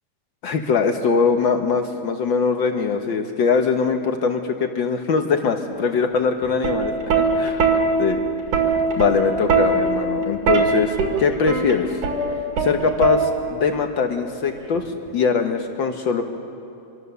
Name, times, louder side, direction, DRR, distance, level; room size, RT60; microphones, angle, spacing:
voice 1, 0.4-8.2 8.6-11.9 12.6-16.2, left 5 dB, 80° left, 5 dB, 1.0 m, -22 dB
Plucked string instrument, 6.4-13.7 14.8-15.1, right 4 dB, 70° right, 3.6 m, -21 dB
25.5 x 23.5 x 6.9 m, 2.8 s
omnidirectional pair, 3.6 m